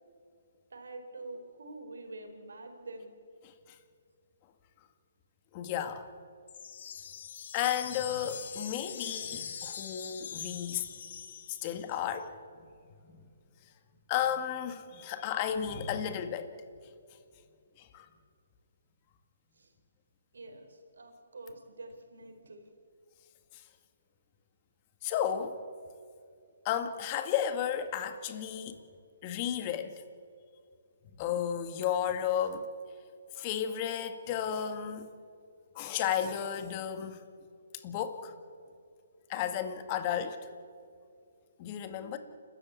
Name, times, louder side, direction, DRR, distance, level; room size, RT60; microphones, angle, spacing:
voice 1, 0.7-3.1 19.5-19.7 20.3-22.6 41.9-42.2, right 2 dB, 80° right, 5 dB, 4.3 m, -46 dB
voice 2, 3.4-3.8 5.5-6.1 7.5-10.9 11.5-12.4 13.0-13.3 14.1-16.5 17.8-18.1 23.5-23.6 25.0-25.6 26.6-28.8 29.2-30.0 31.2-32.7 33.3-35.1 35.7-37.3 37.8-38.3 39.3-40.5 41.6-42.2, left 9 dB, 30° left, 8 dB, 1.9 m, -33 dB
sound 1, 6.5-12.0, left 7 dB, 55° left, 1.7 m, -42 dB
29.5 x 14.0 x 8.4 m, 2.4 s
hypercardioid pair, 150°, 0 cm